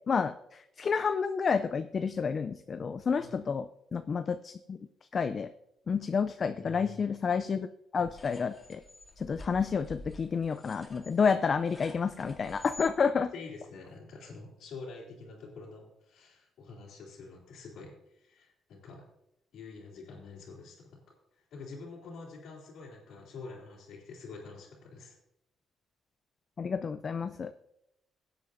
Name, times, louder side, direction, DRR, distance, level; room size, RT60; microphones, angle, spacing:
voice 1, 0.1-4.8 5.1-5.5 5.9-7.7 7.9-8.8 9.2-13.3 26.6-27.5, left 5 dB, 45° left, 10 dB, 0.4 m, -30 dB
voice 2, 6.4-7.0 13.3-19.1 19.5-25.2, left 4 dB, 80° left, -6 dB, 3.0 m, -47 dB
sound 1, 8.0-12.9, left 2 dB, 25° left, 2.1 m, -48 dB
18.0 x 8.2 x 2.7 m, 0.84 s
cardioid pair, 90°, 0 cm